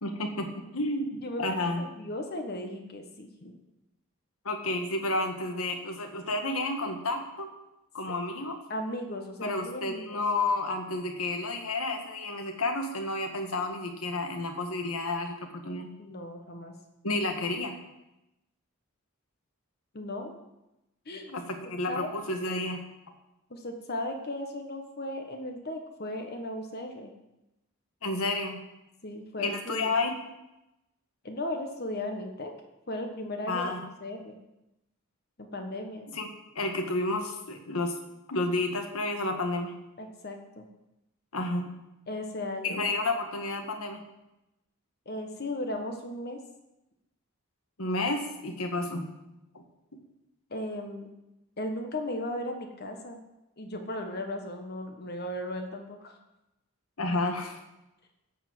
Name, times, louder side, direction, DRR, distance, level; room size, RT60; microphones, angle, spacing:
voice 1, 0.0-1.8 4.5-7.5 7.9-8.6 9.4-15.9 17.0-17.8 21.3-22.8 28.0-28.6 29.4-30.1 33.5-33.9 36.1-36.3 36.6-38.0 38.3-39.7 41.3-41.7 42.6-44.0 47.8-49.1 49.5-49.6 57.0-57.6, left 2 dB, 80° left, 4 dB, 1.6 m, -31 dB
voice 2, 1.2-3.5 8.7-10.2 16.0-16.7 19.9-20.4 21.0-21.3 21.9-22.1 23.5-27.1 29.0-30.0 31.2-32.5 32.9-34.3 35.4-36.1 40.0-40.7 42.1-42.8 45.0-46.4 50.5-51.1 51.6-53.2 53.6-56.2, left 1 dB, 45° left, 4 dB, 1.2 m, -36 dB
13.0 x 5.1 x 7.7 m, 0.94 s
head